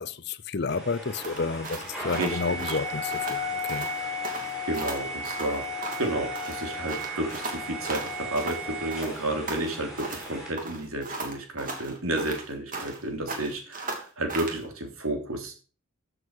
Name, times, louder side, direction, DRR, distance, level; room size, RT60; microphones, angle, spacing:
voice 1, 0.0-3.9, left 4 dB, 50° left, 0.6 m, -31 dB
sound 1, 0.7-10.5, left 1 dB, 5° right, 5.7 m, -35 dB
sound 2, 1.1-3.4 3.7-4.0 4.2-6.1 6.4-8.6 8.9-10.3 10.6-13.0 13.3-14.6, right 3 dB, 40° right, 2.8 m, -37 dB
voice 2, 2.2-2.8 4.7-5.7 6.0-15.5, right 2 dB, 80° right, 3.2 m, -31 dB
14.5 x 7.6 x 4.8 m
head